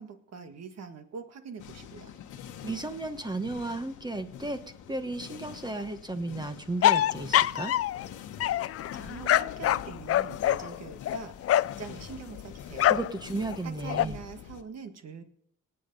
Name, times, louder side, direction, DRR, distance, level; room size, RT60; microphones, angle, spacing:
voice 1, 0.0-2.1 8.9-13.0 13.6-15.2, right 5 dB, 60° right, 7 dB, 1.8 m, -43 dB
sound 1, 1.6-14.6, left 9 dB, 80° left, 1.3 m, -45 dB
voice 2, 2.6-4.6 4.9-7.7 12.8-14.2, right 2 dB, 15° right, 8 dB, 1.1 m, -34 dB
sound 2, 6.8-8.1 8.4-11.8 12.7-13.2 13.5-14.1, left 12 dB, 50° left, 0.5 m, -25 dB
18.5 x 7.6 x 5.4 m, 0.71 s
cardioid pair, 90°, 30 cm